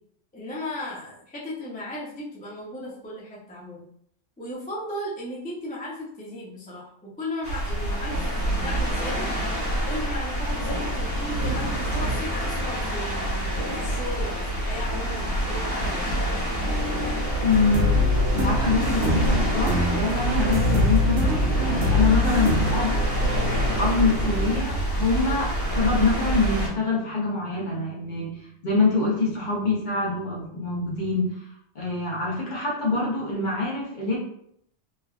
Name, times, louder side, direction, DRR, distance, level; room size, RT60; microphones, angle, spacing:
voice 1, 0.3-3.9 4.4-8.2 8.5-9.3 9.9-16.2, left 1 dB, 10° left, -6 dB, 0.4 m, -36 dB
sound 1, 7.4-26.7, right 1 dB, 30° left, 1.4 m, -27 dB
sound 2, 16.6-24.6, left 2 dB, 50° right, 0.4 m, -31 dB
voice 2, 17.4-17.9 18.3-23.0 23.7-31.4 31.7-34.2, left 3 dB, 45° left, -4 dB, 0.8 m, -25 dB
sound 3, 17.5-22.8, left 2 dB, 85° right, 1.1 m, -24 dB
3.3 x 2.2 x 2.3 m, 0.69 s
omnidirectional pair, 1.2 m